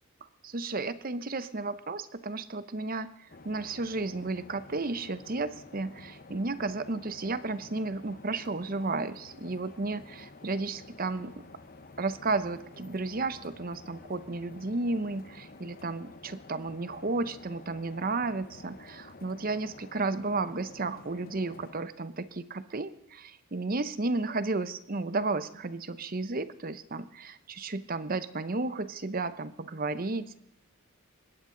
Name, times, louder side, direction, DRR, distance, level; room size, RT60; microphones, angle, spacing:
voice 1, 0.4-3.1 3.4-11.4 12.0-30.4, right 3 dB, 40° right, 14 dB, 0.8 m, -33 dB
inflight atmo MS, 3.3-21.8, left 3 dB, 40° left, 0.9 m, -51 dB
21.0 x 17.0 x 3.9 m, 0.80 s
head